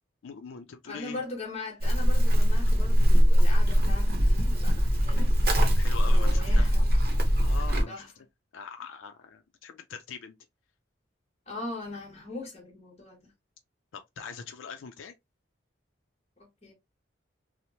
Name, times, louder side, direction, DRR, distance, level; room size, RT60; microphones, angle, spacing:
voice 1, 0.2-1.2 5.7-6.7 7.4-8.1 8.5-10.3 13.9-15.1, left 6 dB, 90° left, 0.4 m, -42 dB
voice 2, 0.9-5.3 6.1-6.9 7.9-8.1 11.5-13.3 16.4-16.7, left 2 dB, 35° left, 1.1 m, -40 dB
Livestock farm animals working animals, 1.8-7.8, equal, 50° right, 0.7 m, -21 dB
3.0 x 2.0 x 2.7 m
head